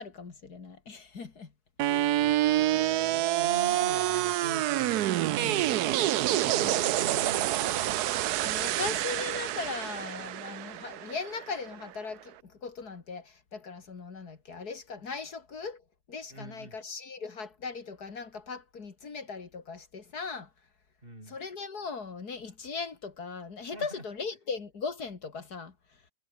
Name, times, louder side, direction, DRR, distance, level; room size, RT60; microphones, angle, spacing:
voice 1, 0.0-1.5 1.8-2.3 6.5-6.8 8.3-15.8 16.1-20.5 21.3-25.7, left 4 dB, 70° left, 2.9 m, -39 dB
sound 1, 1.8-11.8, right 14 dB, 75° right, 1.2 m, -27 dB
voice 2, 1.9-8.0 16.3-16.7 21.0-21.4 23.7-24.0, right 1 dB, 35° right, 8.0 m, -44 dB
omnidirectional pair, 1.7 m